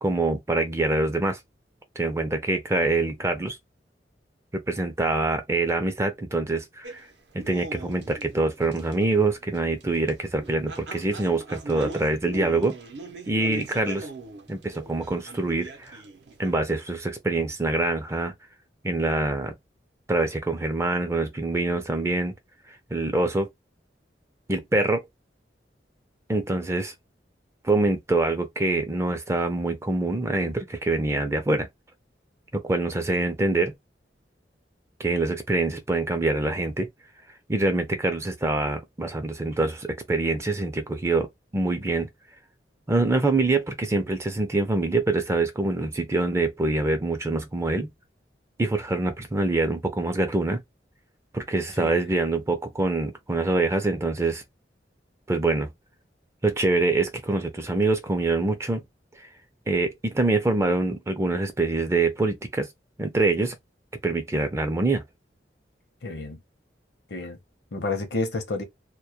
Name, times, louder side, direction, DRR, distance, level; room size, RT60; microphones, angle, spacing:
voice 1, 0.0-1.4 2.0-3.6 4.5-7.1 7.3-12.7 13.3-14.1 14.5-16.0 16.4-18.3 18.8-19.5 20.1-22.3 22.9-23.5 24.5-25.0 26.3-26.9 27.6-31.7 32.5-33.7 35.0-36.9 37.5-41.3 41.5-42.1 42.9-47.9 48.6-50.6 51.3-54.4 55.3-55.7 56.4-58.8 59.7-62.7 63.0-63.6 64.0-65.0, right 2 dB, 15° right, 0.4 m, -25 dB
sound 1, 6.8-16.5, right 2 dB, 75° right, 0.6 m, -41 dB
voice 2, 66.0-66.4 67.1-67.4 67.7-68.6, left 2 dB, 70° left, 0.6 m, -30 dB
2.2 x 2.1 x 2.7 m
head